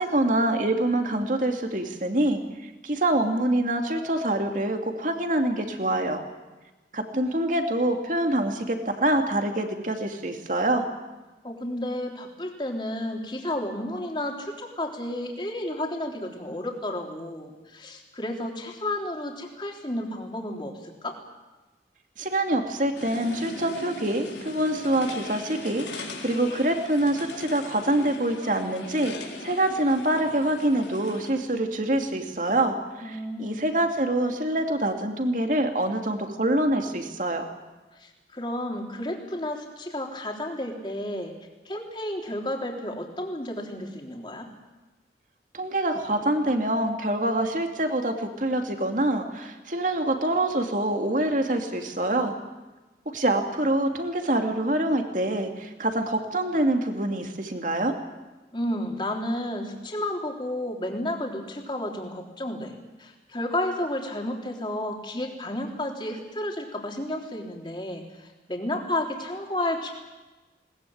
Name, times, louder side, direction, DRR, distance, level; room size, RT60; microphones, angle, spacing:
voice 1, 0.0-6.2 6.9-10.9 22.2-37.4 45.5-52.3 53.1-58.0, right 1 dB, 45° right, 4 dB, 2.6 m, -25 dB
voice 2, 11.4-21.2 33.0-33.6 37.9-41.3 41.7-44.5 58.5-62.7 63.0-69.9, left 1 dB, 25° left, 1 dB, 3.5 m, -32 dB
sound 1, 22.9-31.3, left 2 dB, 85° left, 4.1 m, -39 dB
21.0 x 20.0 x 8.8 m, 1.2 s
head